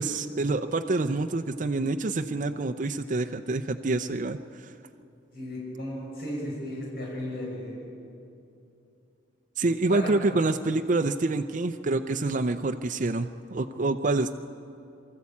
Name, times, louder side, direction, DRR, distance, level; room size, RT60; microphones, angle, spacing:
voice 1, 0.0-4.7 9.6-14.3, right 2 dB, 45° right, 6 dB, 0.5 m, -27 dB
voice 2, 5.3-7.8 9.9-10.4, left 1 dB, 55° left, -4 dB, 6.0 m, -35 dB
24.0 x 13.5 x 8.4 m, 2.7 s
head